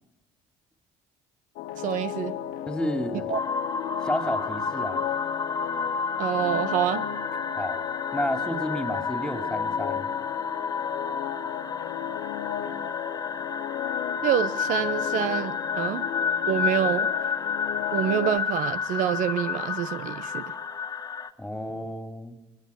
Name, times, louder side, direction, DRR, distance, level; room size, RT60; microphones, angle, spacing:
sound 1, 1.6-18.4, left 11 dB, 75° left, 1.5 m, -35 dB
voice 1, 1.8-2.3 3.3-3.4 6.2-7.1 14.2-16.1 16.5-17.1 17.9-20.5, right 10 dB, 65° right, 0.9 m, -27 dB
voice 2, 2.7-3.3 4.0-5.0 7.5-7.8 8.1-10.1 21.4-22.4, equal, 5° left, 2.9 m, -31 dB
sound 2, 3.3-21.3, left 5 dB, 25° left, 1.7 m, -30 dB
22.0 x 20.0 x 9.3 m
supercardioid pair, 75°, 14 cm